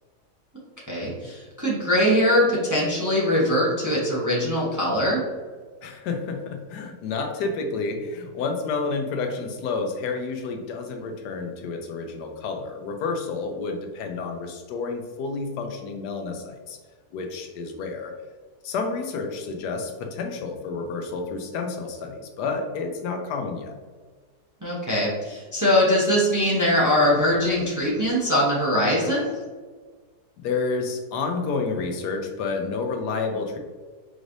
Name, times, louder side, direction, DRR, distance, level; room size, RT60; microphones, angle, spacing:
voice 1, 0.9-5.2 24.6-29.3, left 1 dB, 15° right, -5 dB, 0.7 m, -22 dB
voice 2, 5.8-16.8 17.1-18.1 18.6-23.7 30.4-33.6, left 4 dB, 80° left, 4 dB, 1.2 m, -30 dB
5.1 x 3.2 x 2.6 m, 1.4 s
omnidirectional pair, 1.7 m